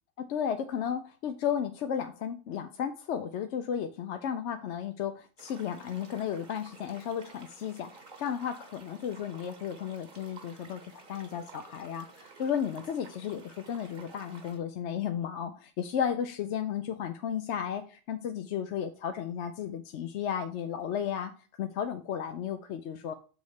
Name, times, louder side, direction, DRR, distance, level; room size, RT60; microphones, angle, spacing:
voice 1, 0.3-21.3 21.6-23.1, left 8 dB, 75° left, 7 dB, 0.9 m, -34 dB
sound 1, 5.4-14.6, right 4 dB, 45° right, 1.2 m, -52 dB
6.4 x 4.1 x 4.8 m, 0.38 s
omnidirectional pair, 1.2 m